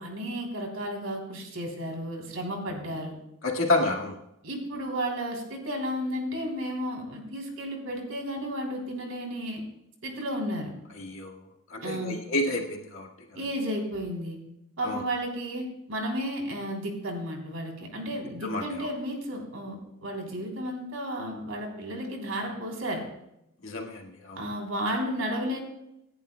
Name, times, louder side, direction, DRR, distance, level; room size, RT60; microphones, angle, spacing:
voice 1, 0.0-3.1 4.4-9.6 10.0-10.7 11.8-12.2 13.3-14.4 14.8-19.7 20.0-23.0 24.4-25.6, equal, 85° right, 1 dB, 3.4 m, -33 dB
voice 2, 3.4-4.2 11.0-11.4 11.7-13.4 14.8-15.0 18.4-18.9 23.6-24.4, left 2 dB, 75° left, 0 dB, 1.8 m, -30 dB
26.5 x 10.5 x 2.2 m, 0.85 s
head